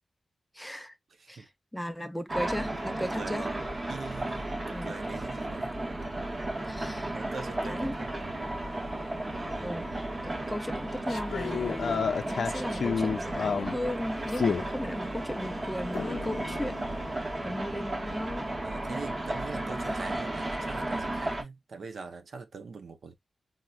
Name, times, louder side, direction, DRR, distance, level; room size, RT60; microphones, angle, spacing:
voice 1, 0.6-0.9 1.3-1.5 1.7-3.5 4.7-4.9 6.6-7.2 7.6-7.9 9.6-16.8 17.4-18.4, equal, 5° left, 0.4 m, -36 dB
voice 2, 1.1-1.5 3.0-3.6 3.9-5.8 7.0-8.4 14.3-14.6 16.0-16.5 18.6-23.2, right 4 dB, 70° right, 0.5 m, -43 dB
sound 1, 2.3-21.4, right 1 dB, 30° right, 0.8 m, -34 dB
sound 2, 7.2-18.3, left 3 dB, 45° left, 0.8 m, -52 dB
sound 3, 11.1-13.8 14.3-14.6 15.9-17.1, left 6 dB, 80° left, 0.4 m, -31 dB
4.2 x 2.0 x 2.3 m
wide cardioid pair, 140°, 0 cm